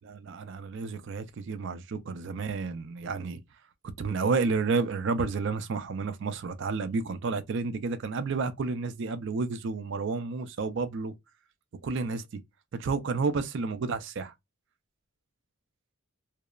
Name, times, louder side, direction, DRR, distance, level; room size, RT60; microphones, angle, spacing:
voice 1, 0.0-3.4 4.0-11.1 11.8-12.2 12.7-14.3, right 4 dB, 55° right, 0.4 m, -31 dB
2.9 x 2.0 x 2.2 m
head